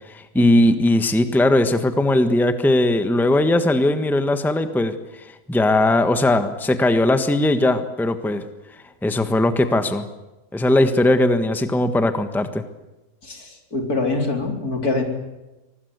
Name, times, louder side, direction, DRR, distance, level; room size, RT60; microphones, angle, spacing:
voice 1, 0.1-4.9 5.5-8.4 9.0-10.0 10.5-12.6, left 1 dB, ahead, 9 dB, 1.3 m, -19 dB
voice 2, 13.2-15.0, left 3 dB, 80° left, 3 dB, 4.5 m, -24 dB
24.5 x 19.5 x 8.2 m, 1.0 s
omnidirectional pair, 1.6 m